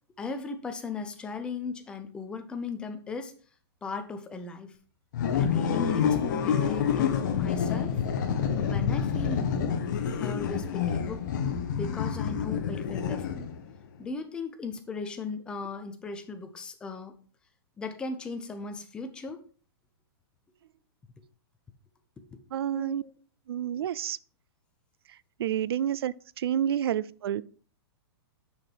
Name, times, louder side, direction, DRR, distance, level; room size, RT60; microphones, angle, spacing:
voice 1, 0.2-3.3 3.8-4.7 5.3-8.0 8.6-9.8 10.2-11.3 11.8-13.5 14.0-17.1 17.8-19.4 22.3-22.4 22.7-23.1, left 4 dB, 5° left, 0.5 m, -37 dB
sound 1, 5.1-13.7, left 7 dB, 45° left, 1.1 m, -28 dB
voice 2, 22.5-23.0 23.5-24.2 25.4-27.4, right 10 dB, 70° right, 0.4 m, -29 dB
6.3 x 5.9 x 4.6 m
hypercardioid pair, 170°, 13 cm